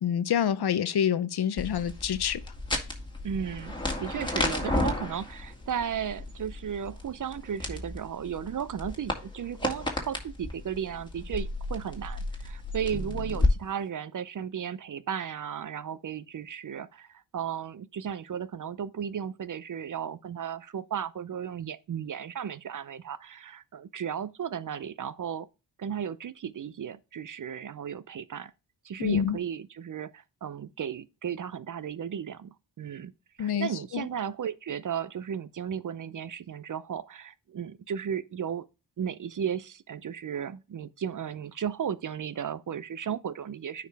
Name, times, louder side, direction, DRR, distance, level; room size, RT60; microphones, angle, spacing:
voice 1, 0.0-2.4 29.0-29.4 33.4-34.1, left 9 dB, 60° left, 0.7 m, -27 dB
sound 1, 1.6-13.5, left 1 dB, 10° left, 2.1 m, -33 dB
voice 2, 3.2-25.5 25.8-28.5 28.8-33.1 33.4-38.7 39.0-43.9, right 8 dB, 45° right, 0.5 m, -35 dB
9.3 x 4.7 x 3.4 m
supercardioid pair, 40°, 45 cm